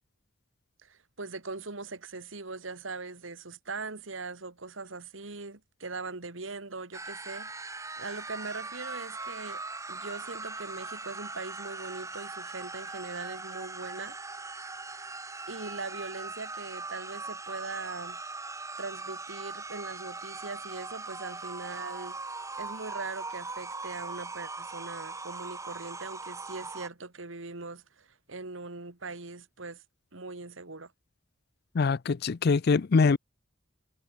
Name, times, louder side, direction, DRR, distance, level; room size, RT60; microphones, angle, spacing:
voice 1, 0.8-7.7 8.0-9.6 9.9-14.2 15.5-18.5 18.8-29.8 30.1-30.9, right 3 dB, 85° right, 2.1 m, -41 dB
sound 1, 6.9-26.9, right 3 dB, 15° right, 1.3 m, -40 dB
voice 2, 31.7-33.2, left 4 dB, 55° left, 0.5 m, -23 dB
head